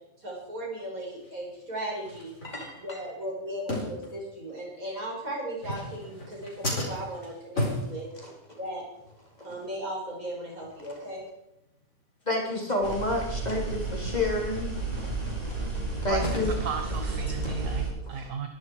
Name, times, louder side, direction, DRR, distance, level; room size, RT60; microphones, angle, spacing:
voice 1, 0.2-2.3 2.8-8.1 8.6-8.9 9.4-11.2, right 1 dB, 85° right, -3 dB, 7.1 m, -36 dB
sound 1, 1.2-1.3 2.0-3.0 3.7-4.6 5.5-8.7 9.0-9.2 9.5-9.7 10.1-10.2 10.6-10.8 11.2-11.3 11.7-11.8 12.2-12.3 14.3-14.4 14.9-17.4, left 1 dB, 70° left, 5.0 m, -36 dB
voice 2, 2.4-2.8 8.5-8.6 12.3-14.7 15.4-16.5 17.4-17.5 18.1-18.3, left 2 dB, 30° left, -1 dB, 3.9 m, -30 dB
sound 2, 12.8-17.9, right 3 dB, 35° right, 6.4 m, -32 dB
voice 3, 16.1-18.5, right 6 dB, 65° right, 6 dB, 1.6 m, -35 dB
22.0 x 12.0 x 4.8 m, 0.87 s
omnidirectional pair, 1.5 m